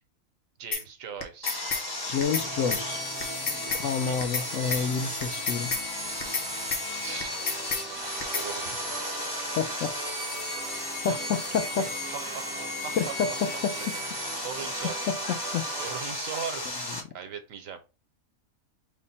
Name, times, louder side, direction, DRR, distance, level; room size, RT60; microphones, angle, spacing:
voice 1, 0.6-1.6 3.7-4.2 6.5-7.4 7.9-9.1 11.0-11.4 11.8-13.1 13.8-14.0 14.4-15.0 15.8-17.8, right 7 dB, 75° right, 1.1 m, -40 dB
sound 1, 0.7-0.8 1.2-1.8 2.2-2.5 2.7-2.8 3.2-3.8 4.2-4.5 4.7-4.8 5.2-5.8 6.2-6.5 6.7-6.8 7.2-7.8 8.2-8.5, left 5 dB, 45° left, 1.0 m, -30 dB
Sawing, 1.4-17.0, left 1 dB, 25° left, 0.6 m, -35 dB
voice 2, 2.1-3.0 3.7-5.7 9.6-9.9 11.0-11.9 13.0-13.3 13.6-13.7 15.5-15.6, left 6 dB, 70° left, 0.9 m, -28 dB
sound 2, 2.3-16.0, right 5 dB, 55° right, 0.8 m, -41 dB
5.1 x 2.1 x 4.0 m
omnidirectional pair, 1.5 m